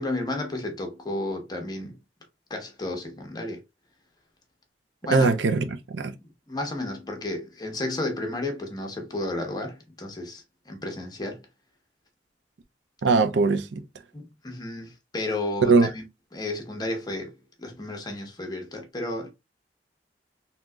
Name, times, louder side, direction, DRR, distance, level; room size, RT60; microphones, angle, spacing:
voice 1, 0.0-2.0 2.5-3.6 5.0-5.3 6.2-11.5 14.1-16.1 16.3-19.3, left 2 dB, 25° left, 0.8 m, -32 dB
voice 2, 5.1-6.2 13.0-13.8 15.6-15.9, right 4 dB, 85° right, 0.5 m, -21 dB
3.8 x 2.8 x 2.2 m
head